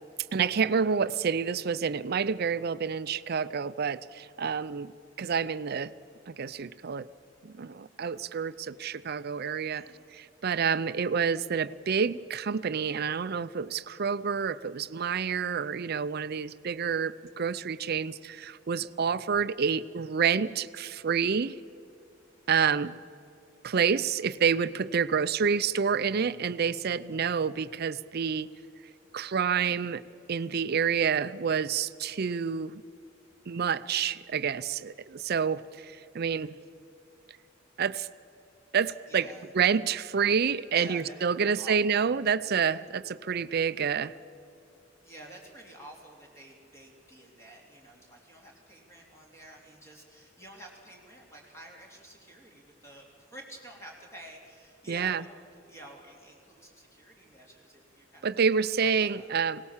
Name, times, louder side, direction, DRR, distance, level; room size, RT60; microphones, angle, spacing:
voice 1, 0.3-4.9 5.2-5.9 6.3-7.1 7.4-9.9 10.1-21.6 22.5-23.0 23.6-28.5 29.1-30.0 30.3-32.8 33.5-36.6 37.8-38.1 38.7-39.3 39.5-44.1 54.9-55.2 58.2-59.6, right 6 dB, 55° right, 15 dB, 0.5 m, -28 dB
voice 2, 9.7-10.1 39.0-39.5 40.7-42.1 45.0-59.3, right 1 dB, 15° left, 0 dB, 2.9 m, -50 dB
20.5 x 18.0 x 7.3 m, 2.6 s
head